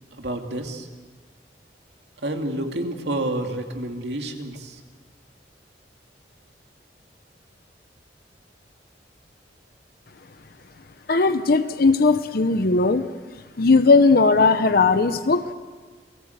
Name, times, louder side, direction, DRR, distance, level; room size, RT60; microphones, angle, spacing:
voice 1, 0.2-0.9 2.2-4.8, right 1 dB, 70° right, 4 dB, 2.6 m, -29 dB
voice 2, 11.1-13.1 13.6-15.5, left 3 dB, 60° left, 10 dB, 0.8 m, -18 dB
28.5 x 18.5 x 8.1 m, 1.5 s
head